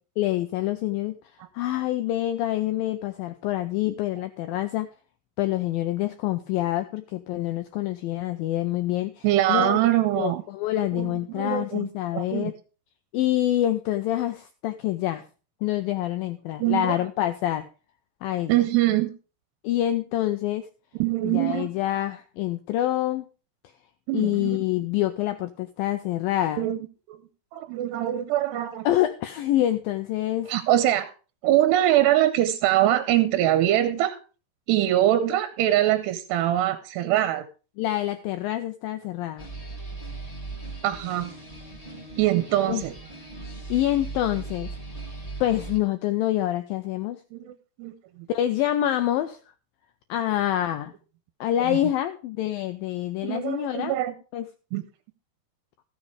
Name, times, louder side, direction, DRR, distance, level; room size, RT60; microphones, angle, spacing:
voice 1, 0.2-1.2 1.5-4.9 5.4-9.8 10.2-12.5 13.1-15.2 15.6-17.7 18.2-18.5 19.6-20.7 21.2-23.3 24.1-26.7 28.9-30.5 37.8-39.5 42.7-42.8 43.7-47.2 48.3-49.4 50.1-50.9 51.4-54.0 54.3-54.5, left 13 dB, 90° left, 9 dB, 2.0 m, -26 dB
voice 2, 9.2-10.4 11.0-11.9 12.1-12.5 16.6-17.0 18.5-19.1 21.0-21.7 24.1-24.6 26.6-26.8 27.1-27.2 27.5-28.9 30.5-31.1 31.4-34.2 34.7-37.5 40.8-41.3 42.2-43.0 47.3-48.3 51.6-51.8 53.2-54.1 54.7-54.8, right 13 dB, 85° right, 12 dB, 2.9 m, -23 dB
sound 1, 39.4-45.8, right 3 dB, 35° left, 0.5 m, -38 dB
15.0 x 6.9 x 4.8 m, 0.35 s
omnidirectional pair, 4.9 m